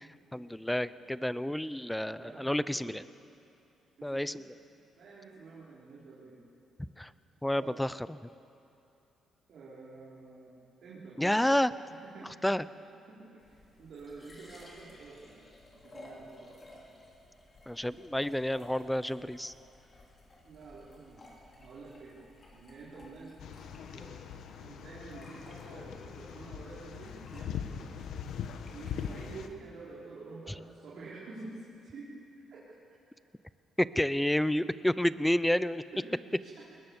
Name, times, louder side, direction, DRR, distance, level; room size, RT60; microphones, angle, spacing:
voice 1, 0.0-3.0 4.0-4.4 7.0-7.1 7.4-8.1 11.2-11.7 12.4-12.7 17.7-19.5 33.8-35.8, left 1 dB, 5° left, 16 dB, 0.6 m, -30 dB
voice 2, 2.1-3.0 4.0-4.4 5.0-6.5 7.6-7.8 9.5-10.5 10.8-11.5 11.9-12.5 13.1-15.5 15.7-16.5 20.4-21.3 21.6-22.2 22.5-23.4 23.7-24.2 24.6-27.9 28.7-32.1 32.5-32.6 35.9-36.7, right 3 dB, 65° right, -7 dB, 4.4 m, -49 dB
sound 1, 13.4-29.5, left 1 dB, 35° left, 4.4 m, -56 dB
sound 2, 23.4-29.5, left 8 dB, 75° left, 1.2 m, -41 dB
20.5 x 20.0 x 7.2 m, 2.7 s
cardioid pair, 90°, 0 cm